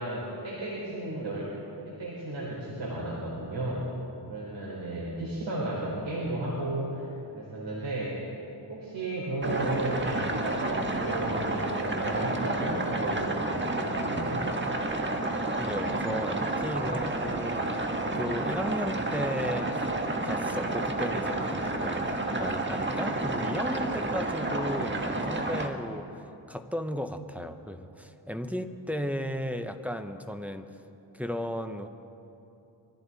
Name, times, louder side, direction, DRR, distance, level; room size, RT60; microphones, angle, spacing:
voice 1, 0.0-1.5 1.8-3.8 4.3-7.1 7.3-8.2 8.7-14.5, right 1 dB, 70° right, -6 dB, 3.8 m, -33 dB
sound 1, 9.4-25.7, right 2 dB, 25° right, 1.5 m, -30 dB
voice 2, 15.6-17.9 18.1-19.8 20.2-30.6 31.1-31.9, equal, 5° right, 7 dB, 0.9 m, -35 dB
24.0 x 14.5 x 4.1 m, 2.9 s
cardioid pair, 70°, 44 cm